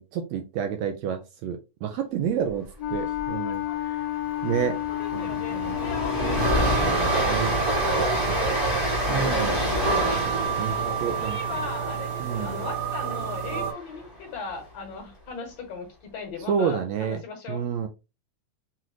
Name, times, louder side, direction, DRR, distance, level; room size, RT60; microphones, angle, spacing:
voice 1, 0.0-4.1 4.4-4.8 5.1-5.8 6.2-6.7 7.2-7.6 8.1-8.4 8.7-8.8 9.1-9.7 10.6-11.4 12.2-12.6 16.5-17.2 17.5-17.9, right 8 dB, 80° right, 1.6 m, -30 dB
Wind instrument woodwind instrument, 2.8-7.0, left 14 dB, 80° left, 1.6 m, -30 dB
Train, 2.9-3.2 3.5-3.6 4.0-14.1, equal, 35° right, 0.9 m, -28 dB
voice 2, 3.4-3.7 4.9-6.8 7.8-8.6 9.0-9.8 10.7-17.6, left 5 dB, 65° left, 2.0 m, -38 dB
sound 1, 6.4-13.7, right 8 dB, 65° right, 1.6 m, -30 dB
5.7 x 2.5 x 3.1 m
omnidirectional pair, 3.6 m